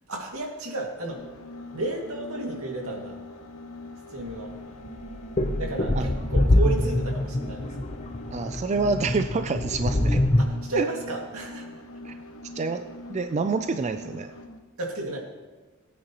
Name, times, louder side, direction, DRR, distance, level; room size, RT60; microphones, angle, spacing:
voice 1, 0.1-1.2 1.7-3.2 4.1-4.5 5.6-7.8 10.4-11.7 14.8-15.2, right 2 dB, 80° right, 0 dB, 2.2 m, -32 dB
sound 1, 1.1-14.6, left 1 dB, 80° left, 1.1 m, -42 dB
sound 2, 4.2-4.3 4.9-10.5, left 1 dB, 30° left, 0.7 m, -24 dB
voice 2, 8.3-10.2 10.8-10.9 12.0-12.1 12.6-14.3, right 4 dB, 30° right, 8 dB, 0.4 m, -27 dB
18.0 x 9.3 x 3.0 m, 1.3 s
head